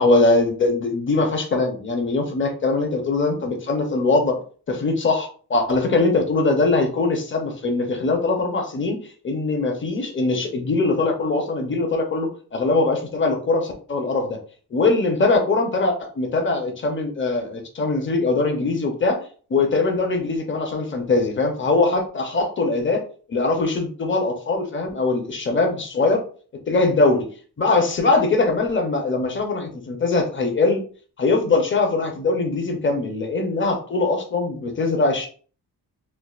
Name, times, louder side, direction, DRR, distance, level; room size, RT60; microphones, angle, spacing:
voice 1, 0.0-4.4 4.7-9.0 9.2-14.4 14.7-19.2 19.5-23.0 23.3-26.2 26.7-27.3 27.6-30.8 31.2-35.3, left 3 dB, 30° left, 3 dB, 0.6 m, -21 dB
4.4 x 2.4 x 2.4 m, 0.42 s
wide cardioid pair, 180°, 41 cm